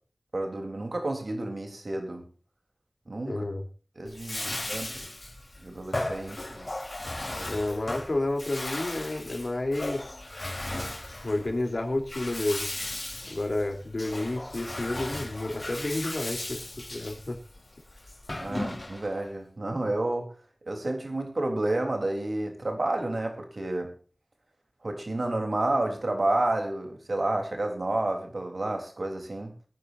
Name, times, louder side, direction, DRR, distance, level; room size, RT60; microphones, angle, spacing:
voice 1, 0.3-2.2 3.1-3.3 4.0-4.4 4.7-4.9 5.6-6.7 18.4-20.3 20.7-23.9 24.8-29.5, right 2 dB, 70° right, 3 dB, 3.6 m, -30 dB
voice 2, 3.3-3.7 4.4-4.6 7.5-10.2 11.2-12.9 13.3-17.4, left 2 dB, 65° left, 2 dB, 3.3 m, -31 dB
Bathtub (filling or washing), 4.1-19.2, left 1 dB, 45° left, 3.8 m, -36 dB
22.5 x 9.7 x 2.7 m, 0.37 s
wide cardioid pair, 55°, 0 cm